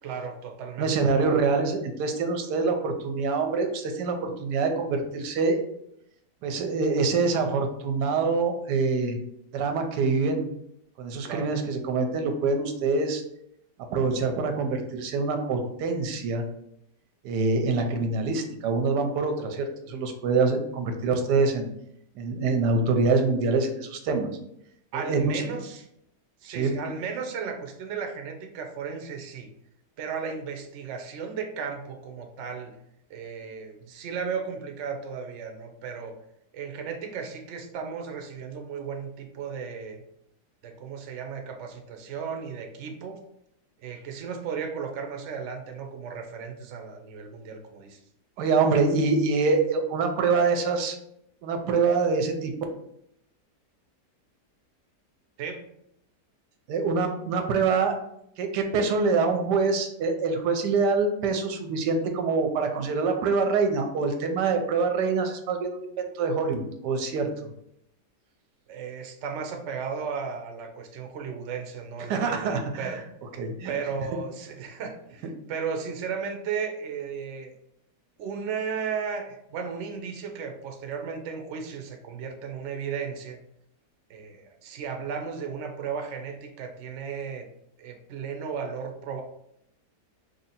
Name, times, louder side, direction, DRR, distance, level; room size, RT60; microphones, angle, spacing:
voice 1, 0.0-1.4 11.2-11.5 24.9-25.9 26.4-29.5 30.0-32.7 33.1-36.1 36.5-40.0 40.6-43.2 43.8-48.0 55.4-55.6 68.7-73.0 73.7-77.5 78.2-83.4 84.1-87.4 87.8-89.2, right 6 dB, 65° right, 4 dB, 0.7 m, -35 dB
voice 2, 0.8-5.6 6.4-9.2 9.5-10.5 11.0-13.2 13.9-16.4 17.2-21.7 22.2-24.3 24.9-25.4 26.5-26.8 48.4-51.0 51.4-52.5 56.7-58.0 58.4-67.3 72.1-73.0 73.4-73.7, right 4 dB, 90° right, 5 dB, 1.2 m, -25 dB
3.1 x 2.7 x 4.1 m, 0.76 s
omnidirectional pair, 1.8 m